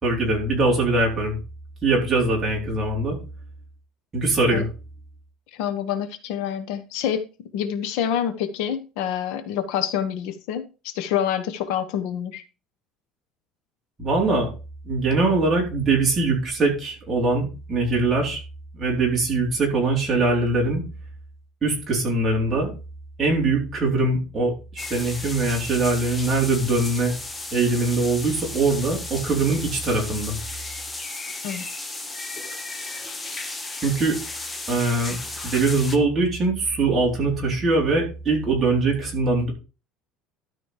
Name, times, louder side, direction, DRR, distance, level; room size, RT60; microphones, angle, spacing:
voice 1, 0.0-1.4 1.8-3.2 4.1-4.7 14.0-14.5 14.8-18.4 18.7-20.9 21.6-22.7 23.2-27.1 27.5-30.4 33.8-34.2 34.7-35.2 35.4-39.5, right 3 dB, 15° right, -2 dB, 3.9 m, -22 dB
voice 2, 5.5-7.2 7.5-12.4 31.4-31.6, left 9 dB, 70° left, 10 dB, 1.2 m, -27 dB
sound 1, 24.8-36.0, left 2 dB, 10° left, 1.0 m, -34 dB
12.5 x 5.2 x 5.0 m, 0.31 s
cardioid pair, 175°, 0 cm